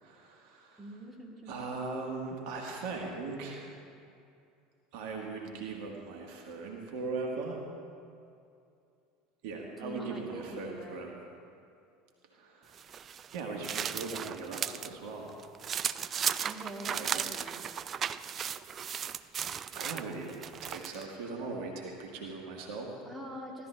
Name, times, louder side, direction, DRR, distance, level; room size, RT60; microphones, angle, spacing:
voice 1, 0.0-0.8 1.5-3.8 4.9-7.6 9.4-11.1 12.3-12.8 13.3-15.4 17.0-17.3 19.8-20.4 20.6-22.9, right 3 dB, 60° right, 0 dB, 1.7 m, -39 dB
voice 2, 0.8-1.6 9.6-11.1 16.4-17.6 23.1-23.7, right 1 dB, 5° right, -2 dB, 2.2 m, -44 dB
sound 1, 12.7-14.9 15.3-21.1, right 8 dB, 35° right, 0.3 m, -36 dB
16.0 x 12.5 x 3.4 m, 2.5 s
hypercardioid pair, 75°, 0 cm